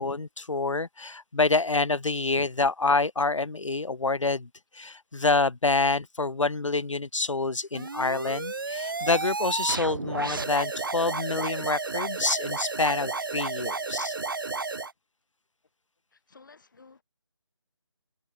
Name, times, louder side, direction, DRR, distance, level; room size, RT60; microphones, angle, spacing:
voice 1, 0.0-4.5 4.7-14.2, left 3 dB, 80° left, 0.5 m, -27 dB
sound 1, 7.7-14.9, right 3 dB, 45° right, 0.6 m, -32 dB
voice 2, 16.1-17.0, left 4 dB, 40° left, 6.5 m, -55 dB
figure-of-eight pair, 155°, 16 cm